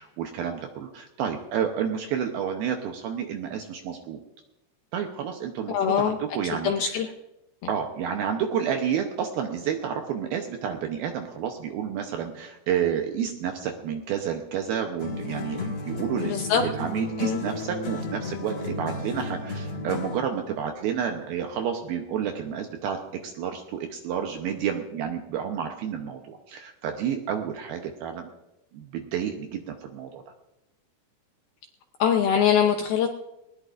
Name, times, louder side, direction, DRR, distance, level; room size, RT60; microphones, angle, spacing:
voice 1, 0.0-4.2 4.9-7.0 7.7-28.3 28.7-30.2, right 8 dB, 75° right, 4 dB, 2.3 m, -30 dB
voice 2, 5.7-6.2 6.6-7.1 16.3-16.6 17.2-17.4 32.0-33.1, left 8 dB, 80° left, 4 dB, 2.2 m, -22 dB
sound 1, 15.0-20.3, left 2 dB, 45° left, 1.6 m, -33 dB
19.5 x 19.5 x 2.5 m, 0.94 s
omnidirectional pair, 5.2 m